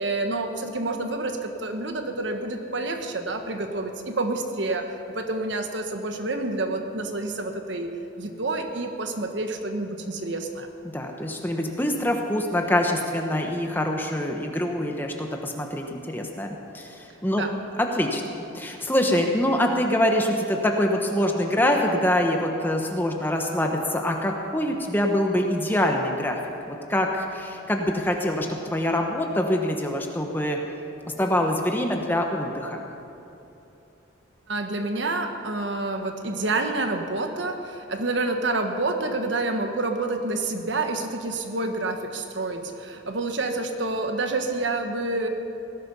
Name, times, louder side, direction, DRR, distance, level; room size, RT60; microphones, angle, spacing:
voice 1, 0.0-4.9 5.1-10.7 17.4-17.5 34.5-45.3, right 2 dB, 70° right, 5 dB, 1.3 m, -28 dB
voice 2, 10.9-17.4 17.8-18.2 18.5-26.4 26.7-30.6 31.2-32.9, left 1 dB, 10° left, 2 dB, 1.1 m, -25 dB
18.5 x 12.0 x 5.6 m, 2.9 s
head